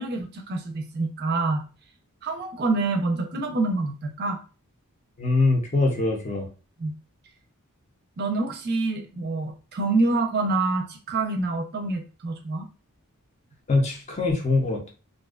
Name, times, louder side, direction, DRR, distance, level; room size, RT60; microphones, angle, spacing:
voice 1, 0.0-1.6 2.2-4.4 6.8-6.9 8.2-12.6, right 3 dB, 45° right, 4 dB, 0.5 m, -26 dB
voice 2, 5.2-6.5 13.7-14.9, left 3 dB, 30° left, 1 dB, 0.6 m, -23 dB
2.5 x 2.2 x 2.3 m, 0.34 s
head